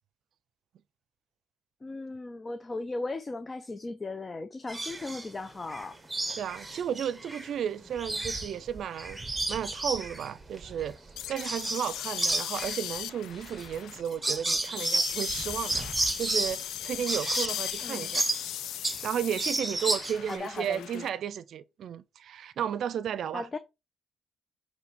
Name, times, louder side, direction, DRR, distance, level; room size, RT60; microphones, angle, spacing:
voice 1, 1.8-6.0 17.8-18.1 20.3-21.1 23.3-23.6, left 3 dB, 25° left, 0.5 m, -37 dB
sound 1, 4.7-5.3 5.7-7.5 7.8-11.9 12.2-19.1 19.4-20.4, right 2 dB, 15° right, 1.1 m, -32 dB
voice 2, 6.4-9.2 9.5-11.0 11.3-18.2 19.0-23.5, right 9 dB, 65° right, 0.5 m, -33 dB
sound 2, 11.2-21.1, left 12 dB, 85° left, 0.3 m, -38 dB
6.5 x 3.2 x 5.1 m
cardioid pair, 90°, 0 cm